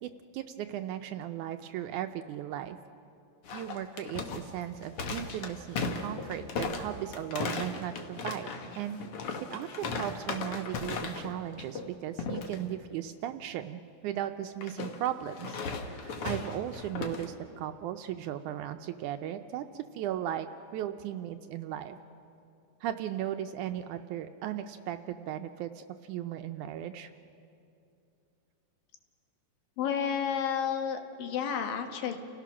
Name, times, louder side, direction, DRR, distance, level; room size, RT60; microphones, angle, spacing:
voice 1, 0.0-2.8 3.5-8.5 8.8-9.0 9.5-15.6 15.9-20.5 20.7-22.0 22.8-27.1, right 11 dB, 80° right, 8 dB, 1.9 m, -36 dB
sound 1, 3.4-11.3 11.6-11.9 12.2-12.6 14.6-17.3, left 4 dB, 55° left, 1.7 m, -36 dB
voice 2, 29.8-32.2, left 8 dB, 85° left, 5 dB, 3.0 m, -31 dB
29.5 x 16.5 x 6.1 m, 2.5 s
omnidirectional pair, 3.9 m